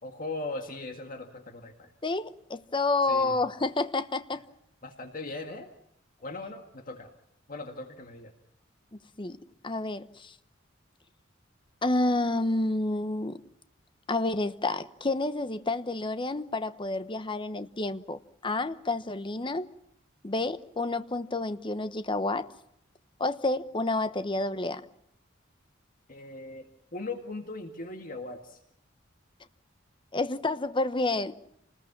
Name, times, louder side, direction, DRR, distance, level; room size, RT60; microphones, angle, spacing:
voice 1, 0.0-1.9 3.1-3.4 4.8-5.7 6.2-7.1 7.5-8.3 26.1-28.6, left 2 dB, 45° left, 1.9 m, -39 dB
voice 2, 2.0-4.4 8.9-9.4 9.6-10.3 11.8-13.4 14.1-19.7 20.2-22.5 23.2-24.8 30.1-31.4, left 2 dB, 25° left, 0.9 m, -29 dB
29.0 x 20.5 x 5.9 m
head